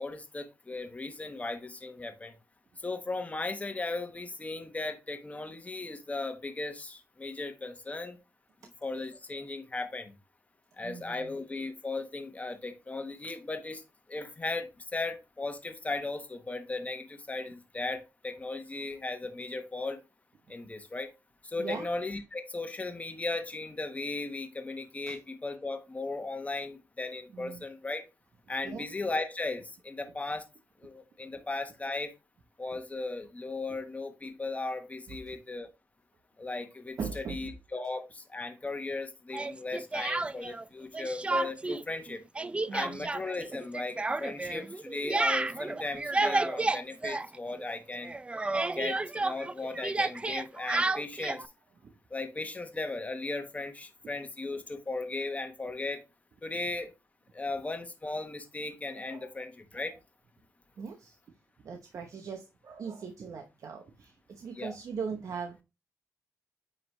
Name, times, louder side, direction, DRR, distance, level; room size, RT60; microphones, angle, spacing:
voice 1, 0.0-2.3 2.8-8.2 8.8-10.1 10.8-13.8 14.1-20.0 20.5-21.1 21.4-28.0 28.5-30.4 30.8-32.1 32.6-35.7 36.4-42.2 42.7-48.1 48.8-51.4 52.1-56.0 56.4-56.9 57.3-59.9 64.5-64.7, left 3 dB, 25° left, 1.2 m, -36 dB
voice 2, 10.8-11.4 21.6-21.9 25.1-25.2 27.3-27.6 28.6-28.9 35.3-35.4 37.0-37.5 42.7-43.1 44.4-44.5 51.8-51.9 58.9-59.3 59.8-59.9 60.8-61.2 61.6-65.6, right 6 dB, 65° right, 0.9 m, -40 dB
Speech, 39.3-40.6 40.9-41.8 42.1-47.8 48.0-51.5, right 2 dB, 20° right, 0.4 m, -31 dB
9.6 x 3.2 x 3.0 m
cardioid pair, 85°, 6 cm